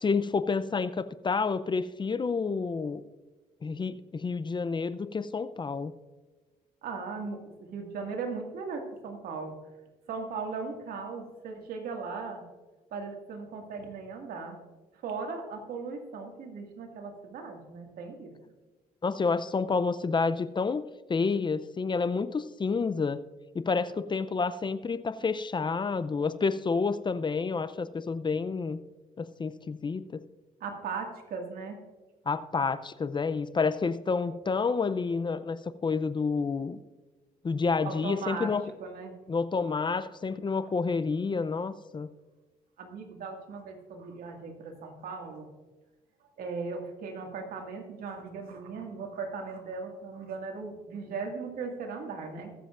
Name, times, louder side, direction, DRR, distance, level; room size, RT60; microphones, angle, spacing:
voice 1, 0.0-3.0 3.6-5.9 19.0-20.8 21.1-23.2 23.5-28.8 29.2-30.2 32.3-36.8 37.4-38.6 39.3-42.1, left 4 dB, 30° left, 14 dB, 0.6 m, -29 dB
voice 2, 6.8-9.5 10.1-12.4 12.9-14.6 15.0-18.4 30.6-31.8 37.8-38.5 38.8-39.2 42.8-45.5 46.4-52.5, right 4 dB, 75° right, 2 dB, 2.1 m, -38 dB
21.5 x 7.6 x 2.5 m, 1.2 s
cardioid pair, 70°, 15 cm